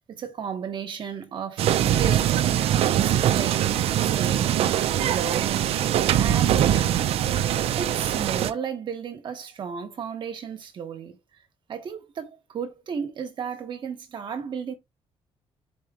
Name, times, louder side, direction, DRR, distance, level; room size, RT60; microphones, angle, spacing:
voice 1, 0.0-5.8 6.2-7.2 7.8-11.2 11.7-14.7, right 7 dB, 50° right, 1.1 m, -34 dB
sound 1, 1.6-8.5, right 11 dB, 80° right, 0.4 m, -22 dB
4.3 x 2.9 x 3.6 m
cardioid pair, 150°, 10 cm